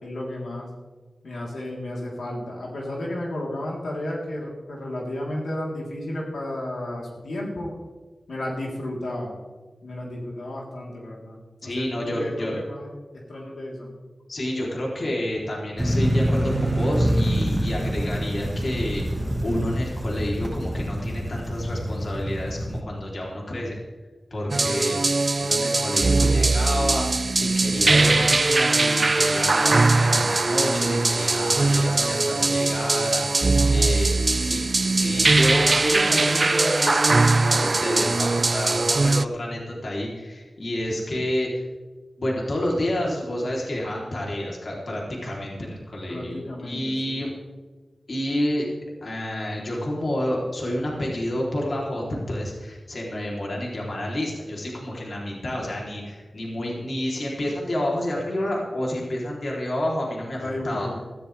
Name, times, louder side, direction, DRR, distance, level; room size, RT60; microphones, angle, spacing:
voice 1, 0.0-0.7 1.2-7.7 8.3-9.3 9.8-11.4 11.6-13.9 46.1-47.1 60.4-61.0, left 1 dB, 85° left, -3 dB, 3.5 m, -33 dB
voice 2, 11.6-12.6 14.3-23.8 24.3-25.0 25.4-41.6 42.2-47.3 48.1-48.7 49.0-61.0, left 1 dB, 50° left, -3 dB, 3.3 m, -29 dB
sound 1, 15.8-22.8, equal, 15° right, 1.2 m, -26 dB
sound 2, 24.5-39.3, right 3 dB, 40° right, 0.3 m, -21 dB
16.5 x 15.0 x 3.4 m, 1.3 s
wide cardioid pair, 115°, 0 cm